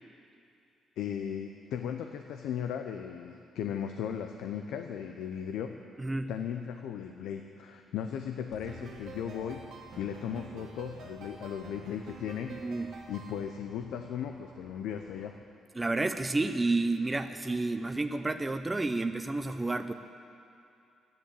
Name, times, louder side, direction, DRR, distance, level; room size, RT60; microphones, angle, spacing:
voice 1, 1.0-5.8 6.3-9.6 10.0-12.6 13.1-15.4, left 8 dB, 85° left, 5 dB, 0.7 m, -37 dB
voice 2, 6.0-6.3 12.5-13.0 15.8-19.9, right 2 dB, 20° right, 8 dB, 0.6 m, -30 dB
sound 1, 8.5-15.4, right 2 dB, 35° right, 1.7 m, -55 dB
sound 2, 8.6-13.7, right 5 dB, 80° right, 2.0 m, -49 dB
13.5 x 10.5 x 8.4 m, 2.6 s
cardioid pair, 90°, 0 cm